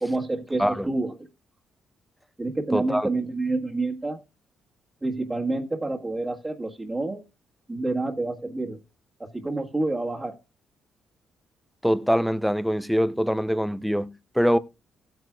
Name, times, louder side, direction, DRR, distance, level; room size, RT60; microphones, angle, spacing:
voice 1, 0.0-1.1 2.4-4.2 5.0-7.2 7.7-8.8 9.2-10.4, right 2 dB, 20° right, 1.6 m, -28 dB
voice 2, 2.7-3.1 11.8-14.6, equal, ahead, 0.7 m, -23 dB
16.0 x 9.2 x 2.4 m
cardioid pair, 90°, 0 cm